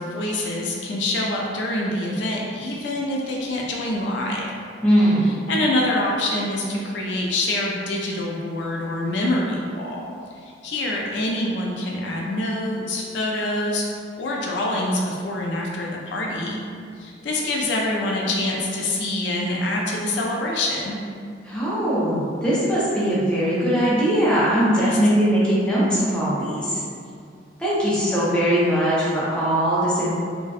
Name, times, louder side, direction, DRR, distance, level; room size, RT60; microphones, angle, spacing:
voice 1, 0.0-4.5 5.5-10.1 10.4-13.9 14.2-16.6 17.0-21.0 24.8-25.0, left 1 dB, 70° left, -2 dB, 0.3 m, -25 dB
voice 2, 4.8-5.4 21.4-26.8 27.6-30.1, equal, 5° left, -10 dB, 0.5 m, -20 dB
2.6 x 2.1 x 2.3 m, 2.3 s
head